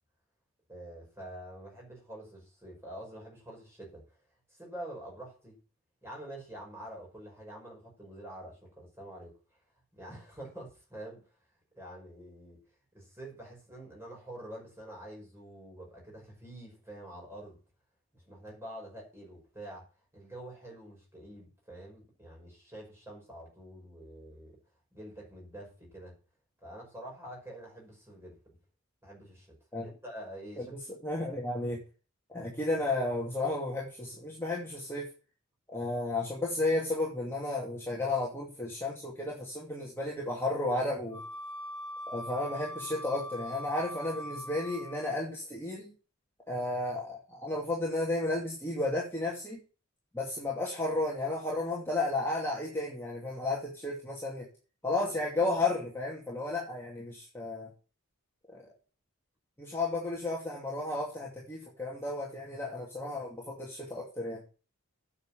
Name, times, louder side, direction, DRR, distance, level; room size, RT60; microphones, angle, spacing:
voice 1, 0.7-4.2 4.5-5.6 6.0-9.3 9.9-11.2 11.8-12.6 12.9-17.6 18.1-19.9 20.1-24.6 24.9-26.2 26.6-28.4 29.0-29.6 29.8-30.8, right 1 dB, 10° right, 5.7 m, -46 dB
voice 2, 31.0-31.8 32.3-35.1 35.7-41.2 42.1-45.9 46.5-49.6 50.1-54.5 54.8-57.7 58.5-58.7 59.6-64.4, left 2 dB, 10° left, 2.5 m, -33 dB
Wind instrument woodwind instrument, 41.1-45.2, equal, 65° right, 1.9 m, -42 dB
9.0 x 7.3 x 7.3 m
head